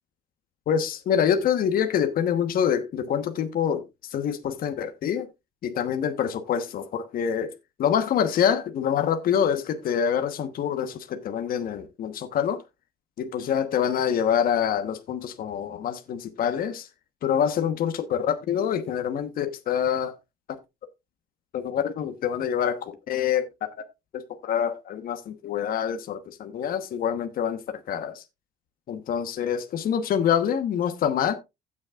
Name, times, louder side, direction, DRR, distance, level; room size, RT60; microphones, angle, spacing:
voice 1, 0.7-5.3 5.6-7.5 7.8-12.6 13.2-16.9 17.2-20.2 21.5-23.7 24.1-27.6 27.9-28.2 28.9-31.3, left 8 dB, 60° left, 1.2 m, -26 dB
16.0 x 6.3 x 2.4 m
cardioid pair, 110°, 17 cm